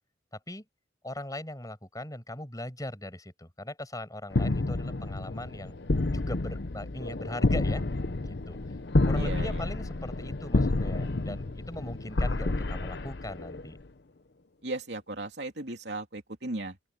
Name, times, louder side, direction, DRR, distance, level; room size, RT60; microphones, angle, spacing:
voice 1, 1.0-5.7 6.1-7.8 8.3-8.6 9.1-13.8, left 1 dB, 20° left, 6.1 m, -39 dB
sound 1, 4.3-13.8, left 2 dB, 60° left, 0.9 m, -29 dB
voice 2, 9.1-9.7 14.6-16.9, right 2 dB, 65° right, 3.1 m, -37 dB
open air
head